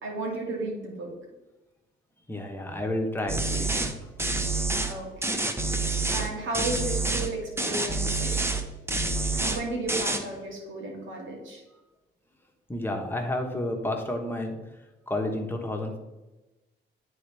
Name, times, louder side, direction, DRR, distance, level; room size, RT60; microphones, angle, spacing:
voice 1, 0.0-1.1 4.9-5.8 6.1-8.4 9.3-11.6, right 2 dB, 75° right, -1 dB, 2.2 m, -34 dB
voice 2, 2.3-3.9 12.7-14.5 15.1-16.0, left 1 dB, 10° left, 2 dB, 1.2 m, -30 dB
sound 1, 3.3-3.9 4.2-4.9 5.2-6.3 6.5-7.3 7.6-8.6 8.9-9.6 9.9-10.2, right 2 dB, 10° right, 0.7 m, -27 dB
9.6 x 3.9 x 3.4 m, 1.1 s
cardioid pair, 90°, 20 cm